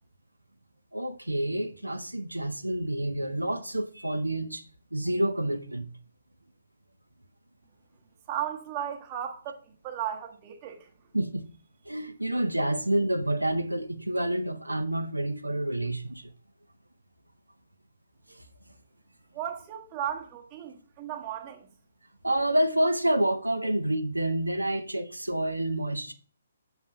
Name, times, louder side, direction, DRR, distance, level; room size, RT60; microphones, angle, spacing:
voice 1, 0.9-5.9 11.1-11.5 11.9-16.3 18.3-18.4 22.2-26.1, right 1 dB, 85° right, 0.6 m, -28 dB
voice 2, 8.3-10.9 19.3-21.7, right 10 dB, 25° right, 1.0 m, -35 dB
7.2 x 3.3 x 5.4 m
figure-of-eight pair, 135°, 0 cm